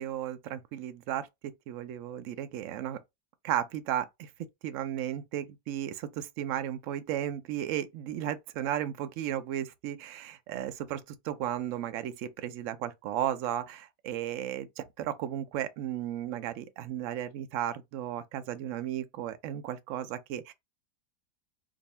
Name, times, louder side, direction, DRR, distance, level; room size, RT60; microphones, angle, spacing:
voice 1, 0.0-3.0 3.4-4.3 4.6-20.5, right 11 dB, 70° right, 0.7 m, -34 dB
2.6 x 2.6 x 4.1 m
omnidirectional pair, 1.8 m